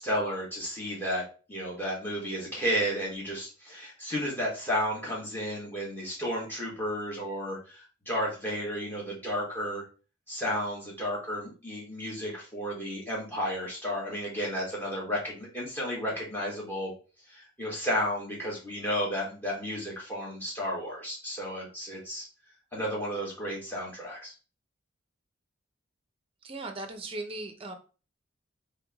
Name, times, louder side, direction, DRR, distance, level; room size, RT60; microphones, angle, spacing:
voice 1, 0.0-9.8 10.3-16.9 17.3-22.2 22.7-24.3, equal, 10° left, -4 dB, 1.6 m, -33 dB
voice 2, 26.4-27.8, right 2 dB, 25° right, 5 dB, 0.6 m, -38 dB
3.5 x 3.4 x 3.6 m, 0.35 s
head